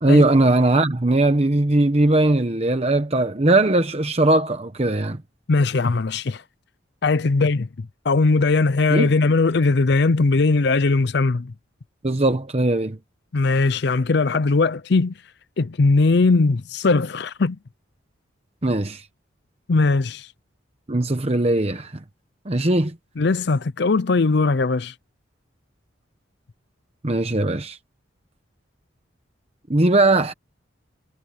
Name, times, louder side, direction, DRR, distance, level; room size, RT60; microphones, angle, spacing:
voice 1, 0.0-5.2 8.9-9.1 12.0-13.0 18.6-19.0 20.9-21.9 22.5-22.9 27.0-27.8 29.7-30.3, right 2 dB, 30° right, 1.0 m, -19 dB
voice 2, 5.5-6.4 7.0-11.5 13.3-15.1 15.6-17.6 19.7-20.3 23.2-24.9, left 3 dB, 55° left, 0.5 m, -19 dB
head